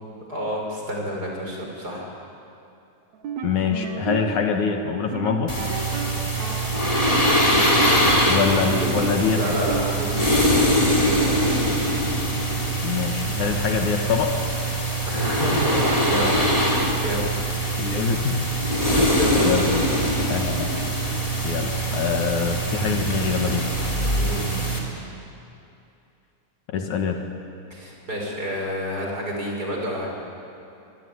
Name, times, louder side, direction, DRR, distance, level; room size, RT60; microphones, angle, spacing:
voice 1, 0.0-2.1 8.4-11.4 15.1-17.3 19.1-19.8 24.1-24.6 27.7-30.1, equal, 25° right, -1 dB, 6.1 m, -29 dB
sound 1, 3.1-10.6, right 8 dB, 65° right, 2.4 m, -33 dB
voice 2, 3.4-5.6 8.3-9.4 12.8-14.4 17.8-18.4 18.9-19.1 19.4-19.7 20.3-20.7 21.4-23.7 26.7-27.2, left 6 dB, 65° left, 4 dB, 2.9 m, -24 dB
sound 2, 5.5-24.8, right 1 dB, 10° left, 3.4 m, -23 dB
24.5 x 24.5 x 9.7 m, 2.7 s
omnidirectional pair, 3.7 m